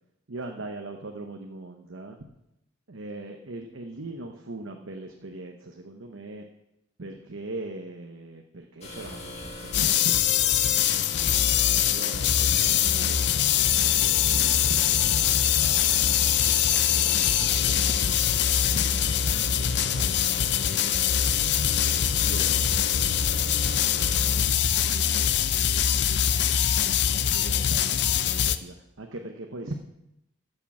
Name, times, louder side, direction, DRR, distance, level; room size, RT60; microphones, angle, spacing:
voice 1, 0.3-2.3 2.9-6.4 7.0-10.9 11.4-13.4 13.8-16.6 17.0-18.2 18.7-20.7 21.5-25.2 25.8-26.0 26.8-29.8, right 2 dB, 80° right, 3 dB, 1.0 m, -41 dB
sound 1, 8.8-24.4, left 1 dB, 30° left, 2.2 m, -40 dB
sound 2, 9.7-28.6, left 9 dB, 55° left, 0.5 m, -23 dB
12.5 x 6.7 x 7.2 m, 0.88 s
head